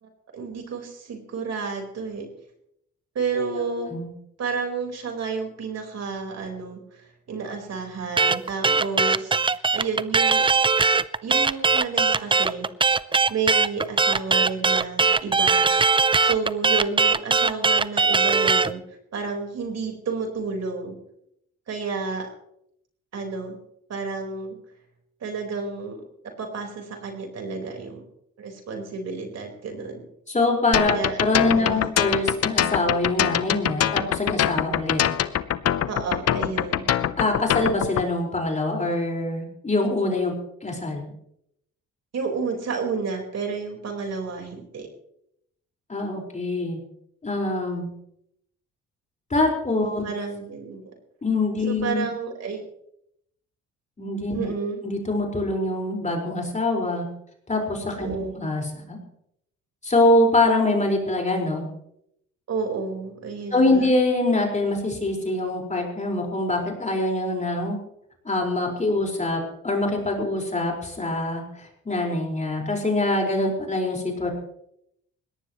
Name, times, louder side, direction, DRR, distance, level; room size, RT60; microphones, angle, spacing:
voice 1, 0.0-2.3 3.1-3.9 4.4-10.4 11.2-12.7 13.3-15.7 16.2-21.0 21.7-22.3 23.1-23.6 23.9-24.6 25.2-26.0 26.4-28.0 28.4-30.0 30.9-31.2 31.5-31.8 35.9-36.9 42.1-44.9 50.0-50.8 51.7-52.6 54.3-54.8 58.0-58.3 62.5-63.9, right 4 dB, 60° right, 2 dB, 4.5 m, -31 dB
voice 2, 3.4-4.1 30.3-35.0 37.2-40.3 40.6-41.1 45.9-46.8 47.2-47.9 49.3-50.0 51.2-52.0 54.0-54.4 54.8-57.1 57.5-59.0 59.8-61.6 63.5-67.8 68.2-74.3, left 2 dB, 25° left, 1 dB, 4.8 m, -24 dB
sound 1, 8.2-18.7, right 4 dB, 15° right, 0.5 m, -20 dB
sound 2, 30.7-38.0, left 10 dB, 55° left, 0.8 m, -23 dB
21.5 x 18.0 x 3.1 m, 0.75 s
cardioid pair, 90°, 30 cm